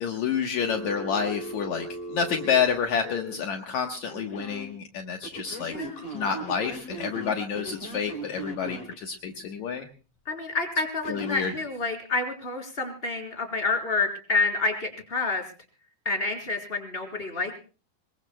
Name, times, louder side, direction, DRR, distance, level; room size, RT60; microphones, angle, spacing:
voice 1, 0.0-5.7 6.1-9.8 11.1-11.5, left 7 dB, 70° left, 3 dB, 1.7 m, -29 dB
Telephone, 0.6-3.3 4.1-4.7 5.2-9.0 11.0-11.6, right 2 dB, 45° left, 7.3 m, -38 dB
voice 2, 5.7-6.0 10.3-15.4 16.1-17.6, left 3 dB, 15° left, 3 dB, 3.4 m, -28 dB
26.5 x 22.0 x 2.2 m, 0.36 s
omnidirectional pair, 5.2 m